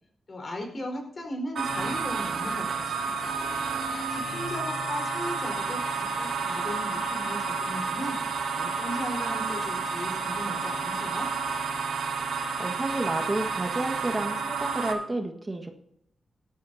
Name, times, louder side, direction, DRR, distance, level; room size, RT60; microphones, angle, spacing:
voice 1, 0.3-3.4 4.1-11.3, left 1 dB, 45° left, 3 dB, 4.6 m, -37 dB
sound 1, 1.6-14.9, right 4 dB, 80° right, 2.3 m, -30 dB
voice 2, 12.3-15.7, right 2 dB, 25° right, 4 dB, 1.6 m, -31 dB
17.5 x 13.0 x 2.8 m, 0.75 s
cardioid pair, 80°, 0 cm